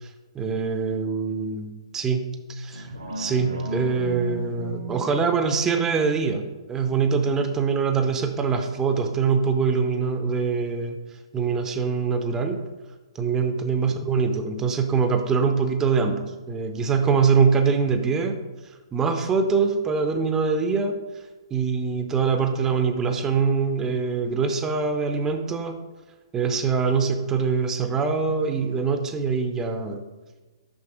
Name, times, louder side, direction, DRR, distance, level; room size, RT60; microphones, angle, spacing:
voice 1, 0.3-2.9 3.2-11.0 11.3-12.6 13.2-18.4 18.9-21.0 21.5-25.8 26.3-30.0, right 5 dB, 15° right, 7 dB, 0.6 m, -24 dB
sound 1, 2.7-7.7 8.2-8.3, right 1 dB, 80° right, 1.3 m, -36 dB
6.2 x 5.3 x 4.9 m, 1.2 s
figure-of-eight pair, 120°, 3 cm